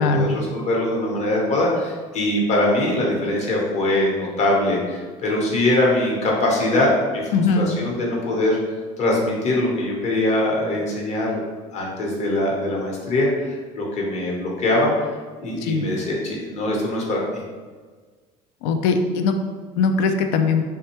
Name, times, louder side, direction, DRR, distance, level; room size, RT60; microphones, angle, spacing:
voice 1, 0.0-8.6 9.0-11.4 11.7-14.9 15.4-17.2, left 1 dB, 45° left, -3 dB, 0.9 m, -22 dB
voice 2, 7.3-7.7 15.6-15.8 18.6-19.3 19.8-20.6, left 4 dB, 80° left, 6 dB, 0.4 m, -20 dB
3.4 x 2.2 x 2.9 m, 1.4 s
supercardioid pair, 110°, 16 cm